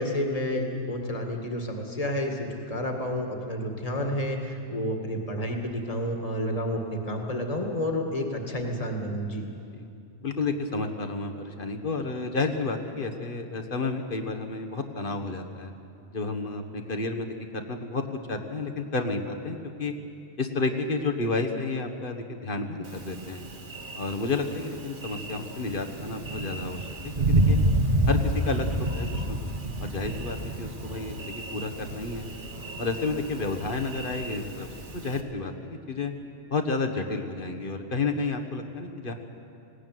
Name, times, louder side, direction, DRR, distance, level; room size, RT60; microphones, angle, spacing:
voice 1, 0.0-9.5, equal, 30° left, 2 dB, 2.2 m, -30 dB
voice 2, 10.2-15.7 16.1-18.0 18.3-19.9 20.4-23.4 23.9-27.6 28.1-28.7 28.9-29.4 29.8-32.3 32.8-34.7 34.9-36.1 36.5-39.1, left 3 dB, 50° left, 5 dB, 1.5 m, -31 dB
Thunder, 22.8-35.2, right 1 dB, 45° right, 1.6 m, -30 dB
20.0 x 17.0 x 9.3 m, 2.6 s
omnidirectional pair, 1.2 m